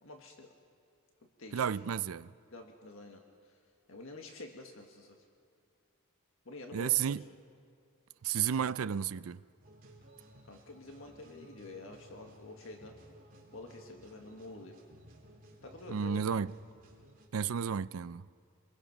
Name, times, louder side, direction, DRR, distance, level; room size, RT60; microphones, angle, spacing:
voice 1, 0.0-0.5 1.4-1.7 2.5-3.6 3.9-5.2 6.5-7.3 10.4-13.0 13.5-14.8 15.6-16.4, left 2 dB, 70° left, 1.7 m, -48 dB
voice 2, 1.5-2.3 6.7-7.2 8.2-9.4 15.9-16.5 17.3-18.2, right 8 dB, 80° right, 0.4 m, -32 dB
sound 1, 9.6-17.3, right 1 dB, 40° right, 3.8 m, -57 dB
27.0 x 21.5 x 6.0 m
head